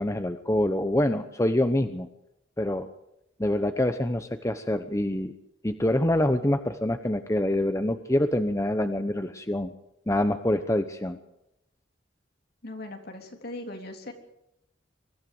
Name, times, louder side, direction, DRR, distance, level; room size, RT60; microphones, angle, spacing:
voice 1, 0.0-2.1 2.6-2.9 3.4-5.3 5.6-9.7 10.1-11.2, left 1 dB, 15° left, 8 dB, 0.8 m, -26 dB
voice 2, 12.6-14.1, left 1 dB, 55° left, 3 dB, 3.5 m, -39 dB
24.0 x 14.5 x 7.8 m, 0.84 s
head